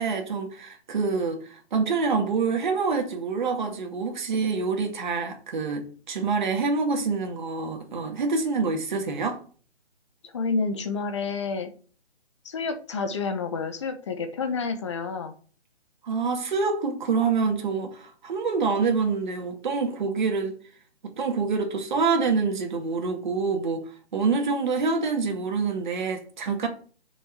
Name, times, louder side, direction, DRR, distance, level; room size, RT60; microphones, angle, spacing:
voice 1, 0.0-9.4 16.0-20.5 21.0-23.8 24.1-26.7, right 4 dB, 45° right, 2.2 m, -26 dB
voice 2, 10.2-11.7 12.4-15.3, left 4 dB, 25° left, 1.0 m, -29 dB
6.6 x 6.0 x 6.3 m
hypercardioid pair, 160°, 34 cm